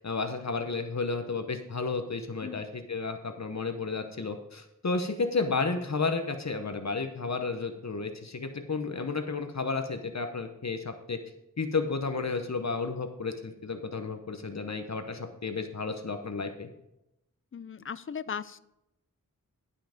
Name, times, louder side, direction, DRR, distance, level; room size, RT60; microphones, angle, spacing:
voice 1, 0.0-11.2 11.6-16.7, left 4 dB, 55° left, 7 dB, 0.9 m, -32 dB
voice 2, 17.5-18.6, left 7 dB, 40° left, 16 dB, 0.4 m, -37 dB
11.5 x 5.7 x 5.1 m, 0.86 s
wide cardioid pair, 70°, 32 cm